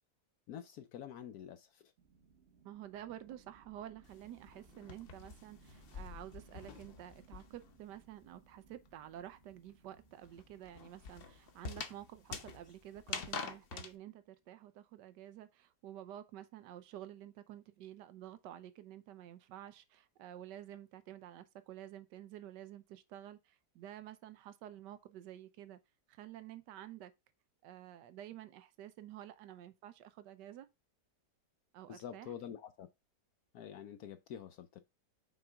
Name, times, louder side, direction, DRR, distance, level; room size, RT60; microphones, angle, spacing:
voice 1, 0.5-1.9 31.9-32.9 33.5-34.8, left 9 dB, 70° left, 1.0 m, -47 dB
sound 1, 2.0-14.2, right 6 dB, 45° right, 1.0 m, -66 dB
voice 2, 2.6-25.8 26.1-27.1 27.6-30.7 31.7-32.3, right 12 dB, 85° right, 1.3 m, -50 dB
sound 2, 4.0-7.8 8.1-13.9, left 5 dB, 50° left, 0.7 m, -46 dB
5.9 x 4.8 x 3.4 m
omnidirectional pair, 1.8 m